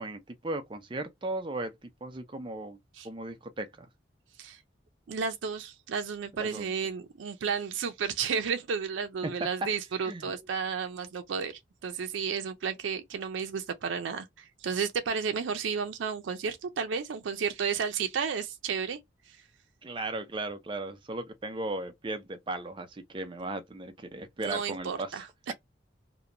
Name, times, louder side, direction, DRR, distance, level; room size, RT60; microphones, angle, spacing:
voice 1, 0.0-2.8 3.0-3.9 6.4-6.7 9.2-9.3 9.6-9.7 10.0-10.3 19.8-25.3, right 2 dB, 25° right, 0.4 m, -36 dB
voice 2, 5.1-19.0 19.3-19.4 24.4-25.5, right 6 dB, 85° right, 0.4 m, -32 dB
2.8 x 2.1 x 2.5 m
head